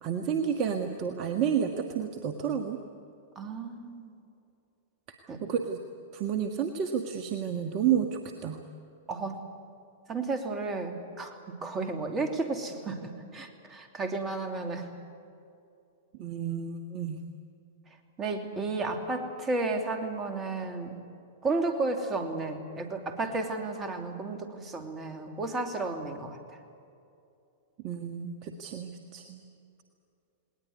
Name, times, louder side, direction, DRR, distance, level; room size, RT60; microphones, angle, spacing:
voice 1, 0.0-2.8 5.1-5.8 6.1-8.6 16.2-17.2 27.8-29.4, right 8 dB, 40° right, 5 dB, 1.5 m, -31 dB
voice 2, 3.3-4.1 5.3-5.4 9.1-9.4 10.1-14.9 18.2-21.0 21.4-26.6, right 3 dB, 20° right, 5 dB, 2.9 m, -33 dB
20.0 x 19.5 x 9.6 m, 2.6 s
hypercardioid pair, 105°, 0 cm